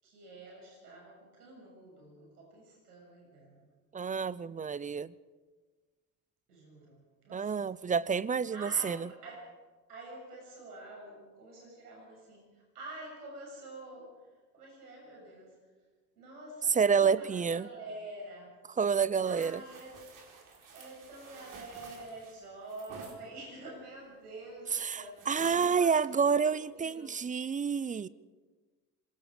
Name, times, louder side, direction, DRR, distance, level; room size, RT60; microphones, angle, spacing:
voice 1, 0.0-3.7 6.5-7.7 8.5-9.5 9.9-14.2 14.5-15.6 16.2-18.5 19.2-19.9 20.7-26.0 26.4-27.2, right 2 dB, 80° right, -1 dB, 7.3 m, -47 dB
voice 2, 3.9-5.1 7.3-9.1 16.7-17.7 18.8-19.6 24.7-28.1, right 6 dB, 15° right, 19 dB, 0.6 m, -29 dB
sound 1, 19.2-23.2 25.2-25.8 26.3-26.4, right 5 dB, 45° right, 4.5 m, -50 dB
25.5 x 23.5 x 5.0 m, 1.3 s
figure-of-eight pair, 60°, 46 cm